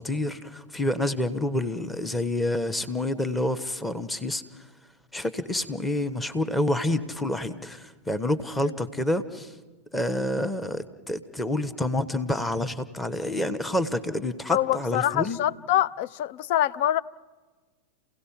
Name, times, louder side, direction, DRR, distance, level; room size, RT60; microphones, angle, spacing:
voice 1, 0.0-4.6 5.1-9.5 9.9-15.4, left 1 dB, 10° left, 1.3 m, -28 dB
voice 2, 14.5-17.0, left 13 dB, 50° left, 0.6 m, -25 dB
30.0 x 17.0 x 5.9 m
figure-of-eight pair, 90°, 0 cm